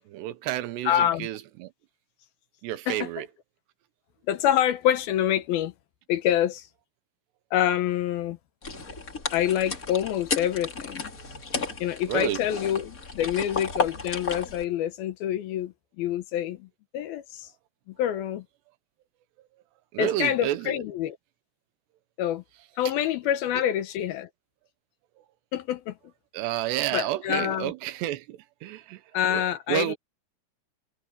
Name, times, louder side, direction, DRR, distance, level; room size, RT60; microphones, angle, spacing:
voice 1, 0.1-1.7 2.6-3.3 12.1-12.4 19.9-20.7 26.3-29.0 29.3-29.4 29.7-30.0, right 14 dB, 90° right, 3.1 m, -30 dB
voice 2, 0.8-1.3 2.9-3.1 4.3-5.7 6.1-6.7 7.5-8.4 9.3-11.0 11.8-16.7 16.9-17.5 18.0-18.4 20.0-21.2 22.2-22.4 22.8-24.3 25.5-26.0 26.9-27.7 29.1-30.0, left 11 dB, 70° left, 2.6 m, -26 dB
sound 1, 8.6-14.6, left 3 dB, 25° left, 2.3 m, -33 dB
omnidirectional pair, 4.8 m